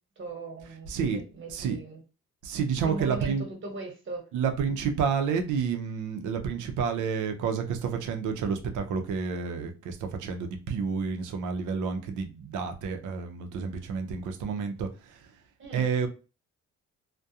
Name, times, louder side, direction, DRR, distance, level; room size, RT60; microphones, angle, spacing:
voice 1, 0.2-2.0 2.8-3.3 3.6-4.3 15.6-15.8, right 2 dB, 40° right, 1.1 m, -38 dB
voice 2, 0.9-1.2 1.5-1.8 2.4-3.5 4.3-15.3 15.7-16.1, right 6 dB, 80° right, 0.6 m, -30 dB
2.3 x 2.2 x 2.7 m
cardioid pair, 90°, 30 cm